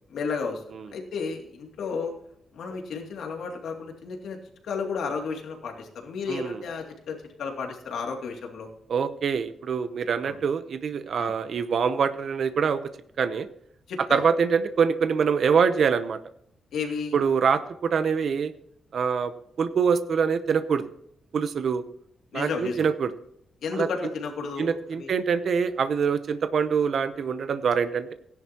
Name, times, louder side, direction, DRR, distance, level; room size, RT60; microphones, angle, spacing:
voice 1, 0.1-0.6 0.9-2.1 2.5-4.4 4.6-8.7 10.2-10.4 11.2-11.3 13.9-14.2 16.7-17.1 22.3-22.8 23.6-25.1, left 5 dB, 80° left, 2 dB, 2.5 m, -32 dB
voice 2, 6.3-6.6 8.9-12.8 13.2-13.5 14.1-16.2 17.1-18.5 18.9-19.3 19.6-20.8 21.3-21.8 22.3-23.1 23.7-23.9 24.6-28.1, right 6 dB, 50° right, 11 dB, 0.7 m, -24 dB
17.0 x 10.5 x 2.9 m, 0.73 s
wide cardioid pair, 175°, 0 cm